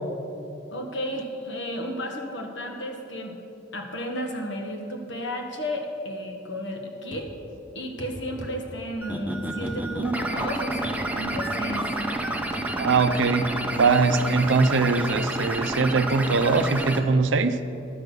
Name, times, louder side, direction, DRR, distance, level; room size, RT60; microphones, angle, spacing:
voice 1, 0.7-3.3 3.7-7.3 7.7-11.9, equal, 65° left, 2 dB, 1.4 m, -33 dB
sound 1, 7.1-7.3 8.0-8.5 9.7-9.8 10.8-11.0 11.3-11.5 12.5-12.7, left 1 dB, 45° left, 1.5 m, -39 dB
sound 2, 9.0-17.0, right 1 dB, 10° right, 0.6 m, -29 dB
voice 2, 12.7-17.6, right 4 dB, 75° right, 11 dB, 0.5 m, -22 dB
11.0 x 6.3 x 6.7 m, 2.7 s
head